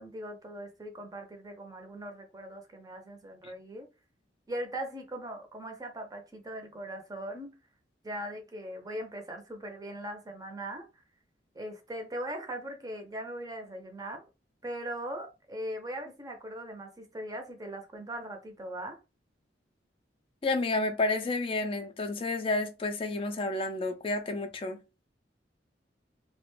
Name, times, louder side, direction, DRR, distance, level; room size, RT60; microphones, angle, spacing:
voice 1, 0.0-3.9 4.5-7.6 8.0-11.0 11.5-14.2 14.6-19.0, right 1 dB, 20° right, 0.5 m, -40 dB
voice 2, 20.4-24.8, left 2 dB, 30° left, 0.4 m, -30 dB
2.4 x 2.1 x 3.0 m
head